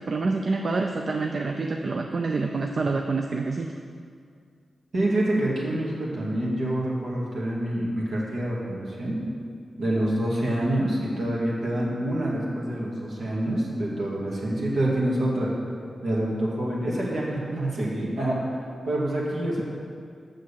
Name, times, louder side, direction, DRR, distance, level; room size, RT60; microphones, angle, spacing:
voice 1, 0.0-3.8, right 3 dB, 55° right, 3 dB, 0.5 m, -27 dB
voice 2, 4.9-9.2 9.8-15.5 16.0-18.4 18.9-19.6, right 1 dB, 75° right, -5 dB, 2.2 m, -26 dB
6.4 x 6.4 x 7.3 m, 2.2 s
cardioid pair, 65°, 0 cm